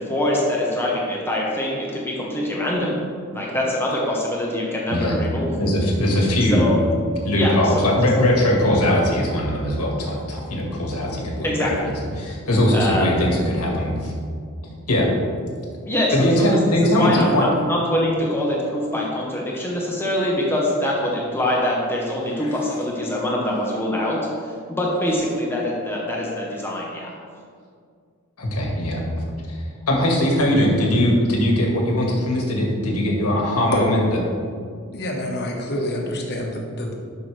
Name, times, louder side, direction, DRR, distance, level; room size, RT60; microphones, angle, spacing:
voice 1, 0.0-3.0 3.3-5.6 6.5-6.8 7.3-8.3 8.9-9.0 11.4-11.8 12.7-13.1 15.8-27.1, left 1 dB, 10° left, -3 dB, 1.1 m, -24 dB
voice 2, 4.9-5.3 5.6-6.7 7.3-11.5 11.8-14.1 14.9-15.1 16.1-17.5 22.4-22.5 28.4-29.0 29.5-34.2, left 1 dB, 90° left, -2 dB, 1.9 m, -20 dB
voice 3, 34.9-37.0, left 1 dB, 50° left, 0 dB, 1.3 m, -26 dB
12.0 x 5.9 x 3.4 m, 2.2 s
head